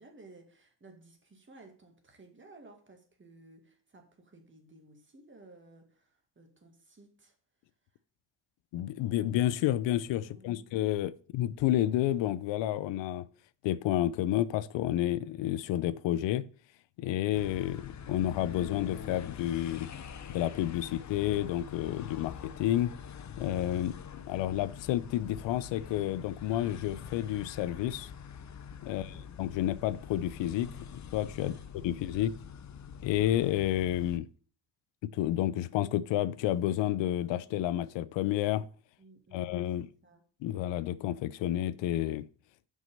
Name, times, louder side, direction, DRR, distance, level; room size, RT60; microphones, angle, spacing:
voice 1, 0.0-7.4 10.2-10.7 28.8-29.3 31.3-32.0 39.0-40.2, right 2 dB, 25° right, 2.1 m, -56 dB
voice 2, 8.7-13.3 13.6-16.4 17.0-19.9 20.3-22.9 23.4-28.1 28.8-31.5 31.8-32.3 33.0-34.3 35.0-38.6 39.3-39.9 40.4-42.3, left 13 dB, 90° left, 0.6 m, -30 dB
sound 1, 17.3-34.2, left 7 dB, 40° left, 0.8 m, -45 dB
6.1 x 5.5 x 5.5 m
cardioid pair, 100°, 43 cm